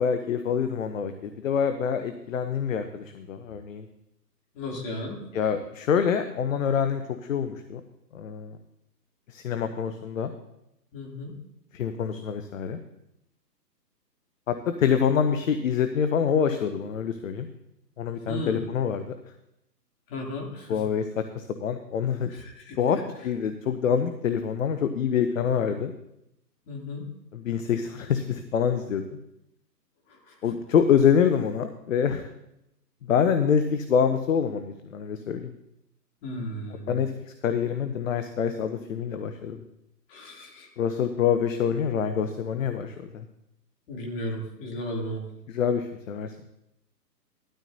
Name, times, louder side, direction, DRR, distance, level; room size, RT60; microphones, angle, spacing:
voice 1, 0.0-3.9 5.3-7.0 7.3-7.8 8.1-8.6 9.3-10.3 11.7-12.8 14.5-17.5 18.0-19.1 20.7-22.3 22.8-25.9 27.3-29.0 30.4-32.3 33.1-35.5 36.9-37.1 37.4-39.6 40.8-43.2 45.5-46.3, left 7 dB, 50° left, 9 dB, 0.9 m, -26 dB
voice 2, 4.5-5.2 10.9-11.4 18.3-18.7 20.1-20.8 22.3-23.0 26.6-27.1 30.1-30.5 36.2-37.0 40.1-40.7 43.9-45.2, left 1 dB, 35° left, -1 dB, 3.0 m, -35 dB
17.0 x 12.5 x 2.7 m, 0.85 s
hypercardioid pair, 145°, 49 cm